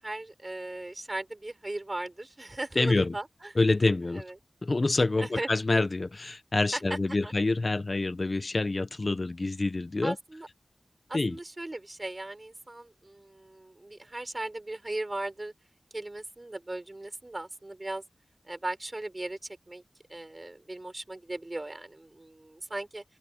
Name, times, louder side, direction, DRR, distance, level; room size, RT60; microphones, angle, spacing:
voice 1, 0.0-3.5 4.2-4.3 5.2-5.5 6.7-7.0 7.2-7.3 10.0-10.5 11.1-15.5 15.9-18.0 18.4-19.4 19.7-19.8 20.1-23.0, right 2 dB, 30° right, 6.3 m, -37 dB
voice 2, 2.8-3.1 3.6-4.2 4.6-10.2 11.1-11.4, left 2 dB, 45° left, 0.9 m, -27 dB
open air
wide cardioid pair, 65°, 0 cm